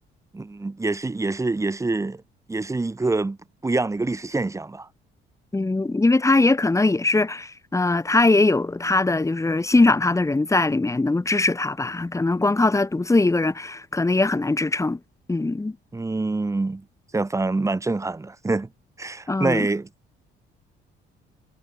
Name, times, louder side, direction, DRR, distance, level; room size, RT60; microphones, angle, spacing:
voice 1, 0.3-2.2 2.5-3.4 3.6-4.9 15.9-16.8 17.1-18.7 19.0-19.9, right 3 dB, 15° right, 1.0 m, -25 dB
voice 2, 5.5-15.0 15.3-15.8 19.3-19.7, left 2 dB, 15° left, 1.4 m, -21 dB
supercardioid pair, 80°, 21 cm